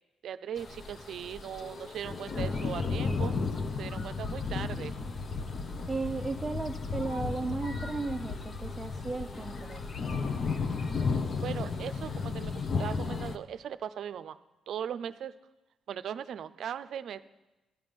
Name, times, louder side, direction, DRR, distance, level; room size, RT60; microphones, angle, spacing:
voice 1, 0.2-3.4 3.8-4.9 11.4-12.5 12.8-14.4 14.7-15.4 15.9-17.2, right 9 dB, 65° right, 14 dB, 0.5 m, -38 dB
sound 1, 0.6-13.4, left 4 dB, 45° left, 0.9 m, -34 dB
voice 2, 5.9-9.8, right 3 dB, 20° right, 3 dB, 0.5 m, -35 dB
12.5 x 12.5 x 5.3 m, 1.1 s
cardioid pair, 90°, 0 cm